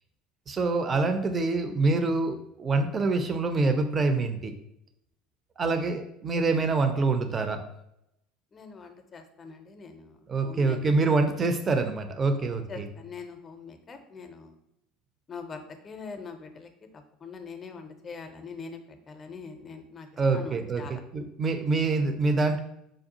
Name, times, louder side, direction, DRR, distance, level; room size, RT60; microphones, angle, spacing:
voice 1, 0.5-4.5 5.6-7.6 10.3-12.9 20.2-22.6, right 3 dB, 30° right, 7 dB, 0.5 m, -26 dB
voice 2, 8.5-10.8 12.7-14.5 15.3-20.1 20.3-21.0, left 5 dB, 30° left, 7 dB, 0.5 m, -43 dB
5.0 x 2.3 x 2.7 m, 0.80 s
figure-of-eight pair, 65°, 0 cm